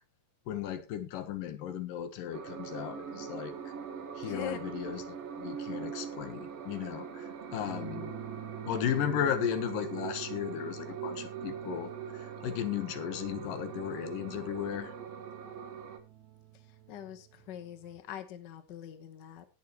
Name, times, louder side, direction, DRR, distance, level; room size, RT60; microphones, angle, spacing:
voice 1, 0.5-3.5 4.2-8.1 8.7-14.9, left 9 dB, 80° left, 2.9 m, -35 dB
sound 1, 2.3-16.0, right 7 dB, 55° right, 2.2 m, -42 dB
sound 2, 3.1-18.0, right 9 dB, 70° right, 3.2 m, -49 dB
voice 2, 4.2-4.6 7.6-8.0 16.9-19.4, left 9 dB, 60° left, 1.1 m, -43 dB
18.5 x 7.2 x 3.0 m
omnidirectional pair, 3.8 m